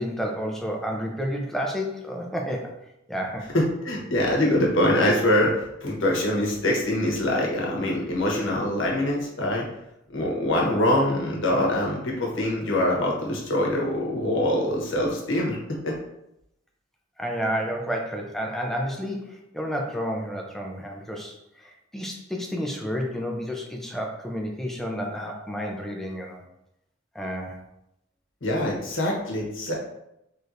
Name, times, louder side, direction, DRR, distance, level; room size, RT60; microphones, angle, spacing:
voice 1, 0.0-2.7 3.1-3.5 17.2-26.4 27.1-27.6, equal, ahead, 0 dB, 0.6 m, -30 dB
voice 2, 3.5-9.6 10.1-15.6 15.8-16.0 28.4-29.7, left 1 dB, 85° left, -2 dB, 1.2 m, -24 dB
4.4 x 3.3 x 2.6 m, 0.83 s
head